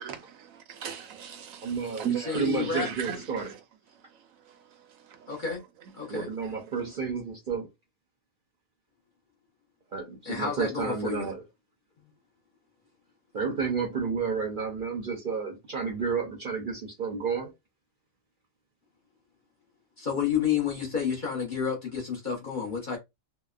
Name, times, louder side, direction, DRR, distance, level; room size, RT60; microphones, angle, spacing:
voice 1, 0.0-7.0, right 10 dB, 75° right, 1.0 m, -39 dB
voice 2, 1.6-2.1 2.3-3.5 6.1-7.7 9.9-11.4 13.3-17.5, right 5 dB, 50° right, 0.6 m, -31 dB
voice 3, 2.3-2.9 5.3-5.6 6.0-6.3 10.3-11.3 20.0-23.0, left 7 dB, 45° left, 0.7 m, -30 dB
2.8 x 2.0 x 2.3 m
omnidirectional pair, 1.4 m